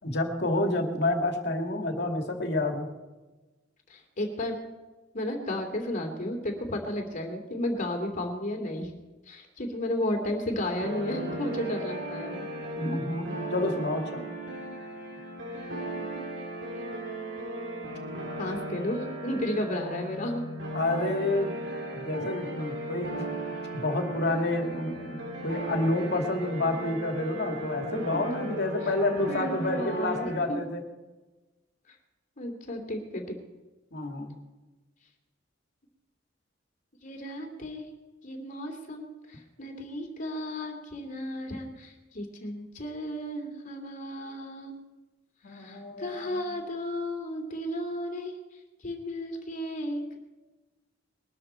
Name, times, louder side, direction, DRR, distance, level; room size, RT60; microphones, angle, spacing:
voice 1, 0.0-2.9 12.8-14.2 20.7-21.6 21.9-23.2 23.7-30.8 33.9-34.4 45.4-46.5, left 2 dB, 60° left, 3 dB, 2.3 m, -29 dB
voice 2, 3.9-4.6 5.1-8.9 9.3-12.4 16.8-16.9 18.4-20.4 29.3-30.6 31.9-32.0 32.4-33.4 37.0-37.9 38.2-44.8 45.5-48.3 48.8-50.2, left 1 dB, 45° left, 4 dB, 2.7 m, -33 dB
sound 1, 10.8-30.4, right 1 dB, 65° right, 3.3 m, -36 dB
21.5 x 12.5 x 4.4 m, 1.2 s
head